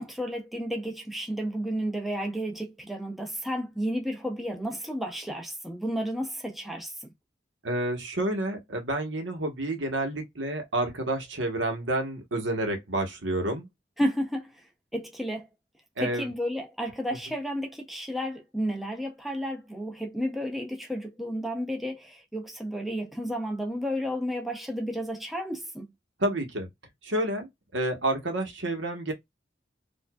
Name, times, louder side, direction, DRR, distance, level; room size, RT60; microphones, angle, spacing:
voice 1, 0.0-7.1 14.0-14.5 14.9-15.5 16.0-25.9, equal, ahead, 0.6 m, -32 dB
voice 2, 7.6-13.7 16.0-16.3 26.2-26.7 27.0-29.1, right 1 dB, 85° right, 1.1 m, -29 dB
4.7 x 2.5 x 2.3 m
head